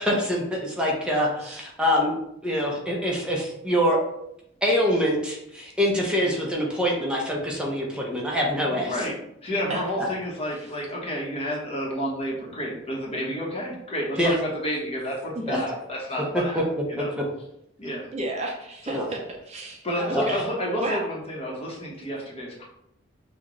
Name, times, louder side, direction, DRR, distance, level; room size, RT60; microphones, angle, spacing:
voice 1, 0.0-2.1 2.4-4.0 4.6-8.9 14.2-14.3 15.5-15.6 16.5-16.6 18.9-19.0 20.1-20.2, equal, 5° right, -3 dB, 0.8 m, -24 dB
voice 2, 8.6-9.2 9.4-16.6 16.9-17.1 17.8-18.1 18.8-18.9 19.8-22.7, equal, 30° left, -3 dB, 1.1 m, -30 dB
voice 3, 18.1-20.4 20.8-21.1, right 1 dB, 35° right, 1 dB, 0.6 m, -32 dB
6.0 x 2.5 x 3.1 m, 0.77 s
head